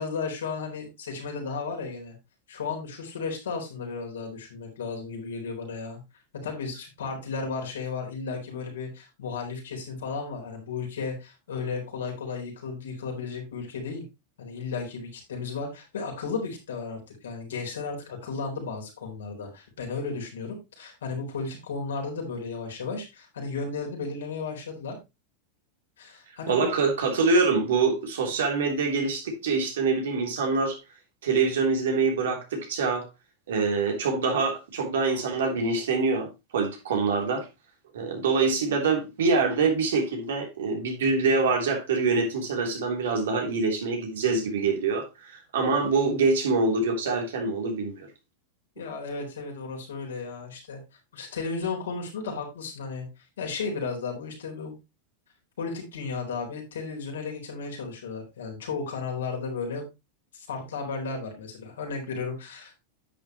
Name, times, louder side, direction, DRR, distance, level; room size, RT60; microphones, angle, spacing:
voice 1, 0.0-2.2 2.5-6.0 6.3-14.0 14.4-25.0 26.0-26.7 48.8-50.8 51.1-53.1 53.4-54.7 55.6-59.8 60.3-62.7, left 4 dB, 85° left, 4.0 m, -34 dB
voice 2, 26.5-30.8 31.2-33.1 33.5-37.5 37.9-48.1, right 4 dB, 80° right, 3.3 m, -25 dB
10.0 x 7.3 x 3.0 m
hypercardioid pair, 110°, 0 cm